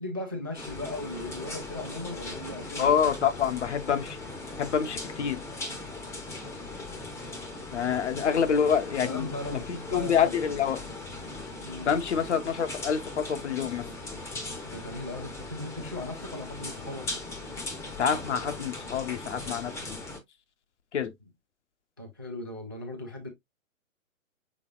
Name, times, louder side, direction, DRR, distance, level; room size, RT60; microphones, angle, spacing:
voice 1, 0.0-3.0 7.9-8.6 9.0-10.3 11.6-11.9 14.6-17.1 21.2-21.3 22.0-23.3, left 2 dB, 20° right, 0.3 m, -38 dB
sound 1, 0.5-20.2, left 2 dB, 5° left, 0.7 m, -39 dB
voice 2, 2.8-4.2 4.6-5.4 7.7-9.3 9.9-10.8 11.9-13.9 18.0-20.0 20.9-21.1, left 7 dB, 60° left, 0.9 m, -27 dB
6.2 x 3.5 x 2.3 m
figure-of-eight pair, 125°, 40 cm